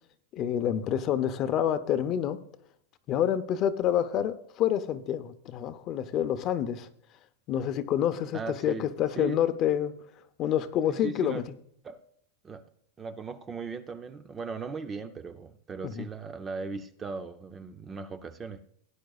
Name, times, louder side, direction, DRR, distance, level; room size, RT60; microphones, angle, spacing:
voice 1, 0.3-2.4 3.1-6.9 7.5-10.0 10.4-11.4 15.8-16.1, left 10 dB, 30° left, 0.6 m, -28 dB
voice 2, 8.3-8.8 9.2-9.4 10.9-11.4 11.8-12.0 12.4-12.7 13.0-18.6, right 4 dB, 15° right, 0.5 m, -38 dB
17.0 x 10.5 x 2.3 m
supercardioid pair, 170°, 0 cm